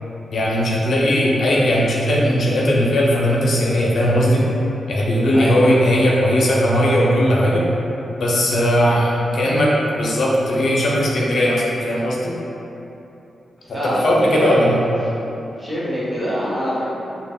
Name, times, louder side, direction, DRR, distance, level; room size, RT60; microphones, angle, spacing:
voice 1, 0.3-4.4 4.9-7.6 8.2-12.3 13.8-14.8, equal, 70° left, -4 dB, 0.4 m, -18 dB
voice 2, 5.3-5.7 13.6-14.6 15.6-16.8, equal, 20° right, -8 dB, 0.8 m, -24 dB
3.3 x 2.0 x 2.3 m, 2.9 s
cardioid pair, 80°, 0 cm